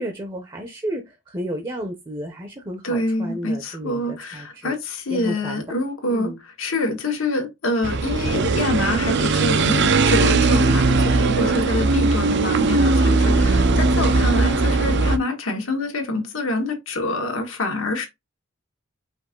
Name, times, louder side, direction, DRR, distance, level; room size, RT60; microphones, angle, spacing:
voice 1, 0.0-4.7 5.1-5.6 6.1-6.4 14.0-14.2, equal, 20° right, 0.7 m, -32 dB
voice 2, 2.8-18.1, left 2 dB, 85° left, 1.5 m, -26 dB
sound 1, 7.8-15.2, right 3 dB, 60° right, 0.6 m, -19 dB
5.2 x 2.6 x 3.8 m
head